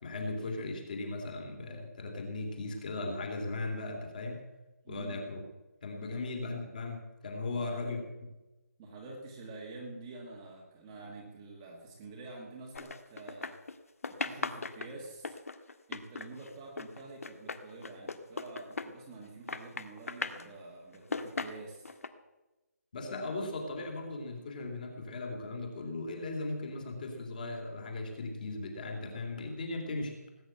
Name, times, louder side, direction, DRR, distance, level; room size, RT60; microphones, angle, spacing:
voice 1, 0.0-4.4 4.9-5.4 5.8-8.0 22.9-30.1, left 2 dB, 30° left, 4 dB, 2.9 m, -37 dB
voice 2, 4.8-5.3 6.1-6.2 7.5-8.0 8.8-13.6 14.1-15.4 15.9-21.9, right 3 dB, 10° right, -1 dB, 1.4 m, -47 dB
sound 1, 12.7-13.8 14.0-19.2 19.5-20.5 20.9-22.1, left 4 dB, 55° left, 1.6 m, -38 dB
19.0 x 9.2 x 7.9 m, 1.1 s
figure-of-eight pair, 175°, 9 cm